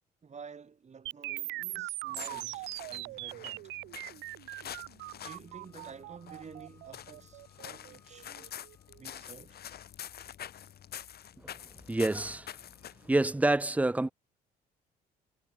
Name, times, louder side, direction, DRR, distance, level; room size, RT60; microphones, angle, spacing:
voice 1, 0.2-3.7 5.2-8.5 9.0-9.6, right 6 dB, 35° right, 3.0 m, -50 dB
sound 1, 1.1-9.0, right 20 dB, 65° right, 1.1 m, -41 dB
sound 2, 2.0-13.2, left 10 dB, 55° left, 3.3 m, -47 dB
Wind instrument woodwind instrument, 5.5-9.0, left 2 dB, 15° left, 6.1 m, -67 dB
voice 2, 11.9-12.5 13.0-14.1, right 2 dB, 5° right, 0.5 m, -27 dB
hypercardioid pair, 55°, 20 cm